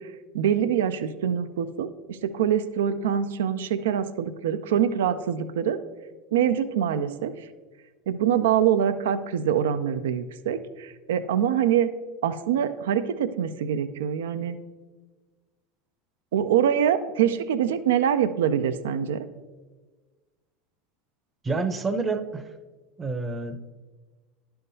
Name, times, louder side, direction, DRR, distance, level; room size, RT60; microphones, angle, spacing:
voice 1, 0.3-5.8 6.3-7.3 8.1-11.9 12.2-14.6 16.3-19.2, right 9 dB, 80° right, 12 dB, 0.4 m, -24 dB
voice 2, 21.4-22.4 23.0-23.7, right 3 dB, 25° right, 11 dB, 0.7 m, -28 dB
11.0 x 5.6 x 2.7 m, 1.3 s
hypercardioid pair, 90°, 0 cm